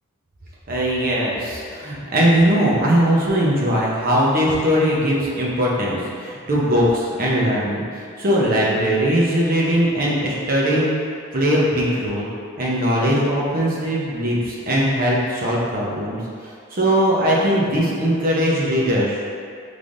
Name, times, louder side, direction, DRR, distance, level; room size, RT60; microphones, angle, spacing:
voice 1, 0.7-10.9 11.3-12.3 12.6-19.3, equal, 40° right, -5 dB, 0.7 m, -20 dB
5.5 x 3.3 x 2.6 m, 2.3 s
head